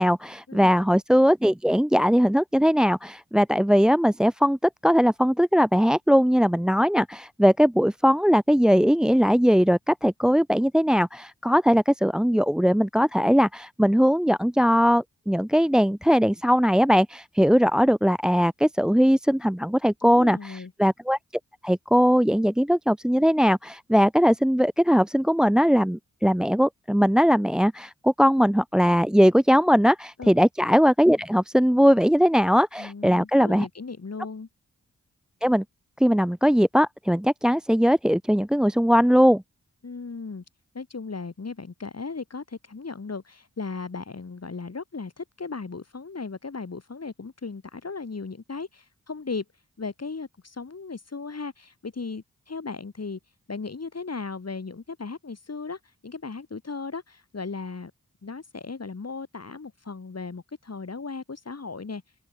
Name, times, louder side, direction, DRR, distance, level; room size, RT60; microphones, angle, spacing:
voice 1, 0.0-4.6 4.8-21.2 21.6-33.7 35.4-35.6 36.0-39.4, equal, ahead, 0.5 m, -20 dB
voice 2, 20.0-20.7 30.2-30.3 32.8-34.5 39.8-40.4 40.7-49.5 49.8-53.2 53.5-57.9 58.2-62.0, left 4 dB, 50° left, 5.3 m, -36 dB
cardioid pair, 50°, 32 cm